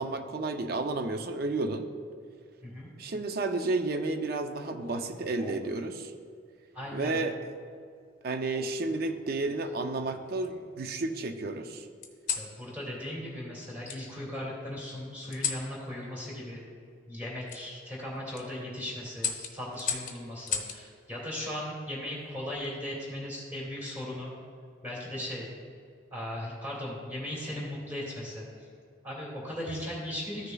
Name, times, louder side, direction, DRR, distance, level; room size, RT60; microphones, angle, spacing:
voice 1, 0.0-1.9 3.0-6.1 6.9-7.4 8.2-11.9, right 2 dB, 45° right, 7 dB, 0.5 m, -31 dB
sound 1, 4.7-5.8 6.8-7.2 8.5-9.3 9.9-10.8 12.0-12.5 13.9-14.0 15.3-15.7 17.5-17.6 18.2-18.4 19.2-20.8 22.3-22.7, left 7 dB, 40° left, 0.8 m, -36 dB
voice 2, 6.7-7.2 12.3-16.6 17.1-24.3 24.8-25.5 26.1-28.4 29.0-30.5, left 1 dB, 10° right, -5 dB, 2.1 m, -37 dB
14.0 x 6.5 x 2.3 m, 2.3 s
head